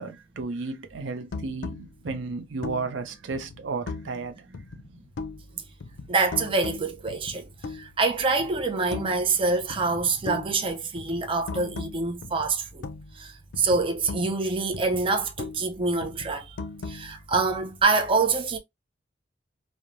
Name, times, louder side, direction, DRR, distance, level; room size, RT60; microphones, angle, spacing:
voice 1, 0.0-4.4, right 4 dB, 90° right, 0.5 m, -33 dB
sound 1, 1.3-4.2 4.5-5.5 5.8-8.0 8.4-9.4 9.7-13.3 13.5-15.7 16.0-17.8, left 3 dB, 80° left, 0.4 m, -39 dB
voice 2, 6.1-12.9 13.1-16.6 16.9-18.6, right 3 dB, 30° right, 0.4 m, -26 dB
3.0 x 2.1 x 2.5 m
head